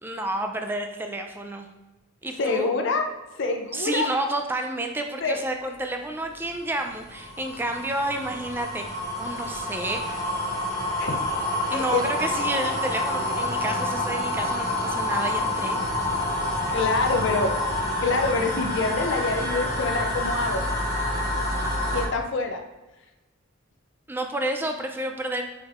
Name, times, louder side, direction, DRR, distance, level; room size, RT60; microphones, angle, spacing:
voice 1, 0.0-1.7 2.2-2.7 3.7-10.3 11.7-15.8 24.1-25.4, right 1 dB, 10° right, 4 dB, 0.3 m, -30 dB
voice 2, 2.4-3.0 3.3-4.1 5.2-5.4 11.0-11.2 11.7-12.2 16.7-17.5 18.0-20.7 21.9-22.6, left 3 dB, 60° left, 4 dB, 0.5 m, -26 dB
sound 1, 6.5-22.1, left 1 dB, 35° left, 1.4 m, -28 dB
4.8 x 4.4 x 2.4 m, 1.1 s
head